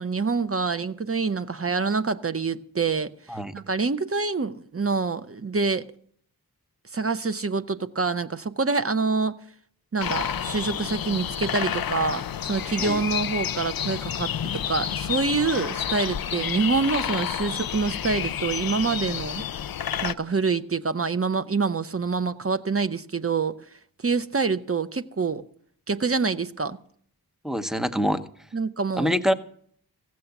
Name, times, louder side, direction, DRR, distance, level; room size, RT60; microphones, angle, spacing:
voice 1, 0.0-3.1 3.5-5.9 6.9-9.3 9.9-19.4 20.0-23.5 24.0-25.4 25.9-26.8 28.5-29.1, right 4 dB, 40° right, 0.8 m, -26 dB
sound 1, 10.0-20.1, left 9 dB, 70° left, 0.5 m, -30 dB
voice 2, 27.4-28.2 28.9-29.3, equal, ahead, 0.9 m, -25 dB
15.5 x 7.7 x 7.0 m
wide cardioid pair, 55°, 37 cm